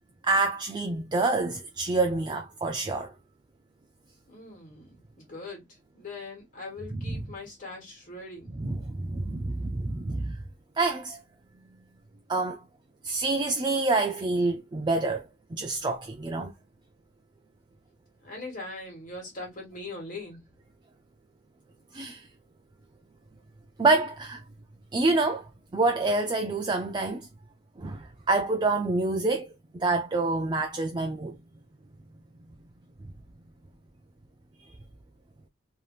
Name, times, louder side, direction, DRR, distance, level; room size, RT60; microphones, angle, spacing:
voice 1, 0.2-3.1 6.9-7.2 8.5-10.4 10.8-11.2 12.3-12.6 13.0-15.2 15.5-16.5 21.9-22.3 23.8-24.4 24.9-25.4 25.7-27.3 27.8-29.5 29.8-31.4, right 3 dB, 25° right, 0.3 m, -27 dB
voice 2, 4.3-8.5 18.2-20.4, left 2 dB, 45° left, 1.4 m, -41 dB
3.3 x 2.7 x 2.4 m
head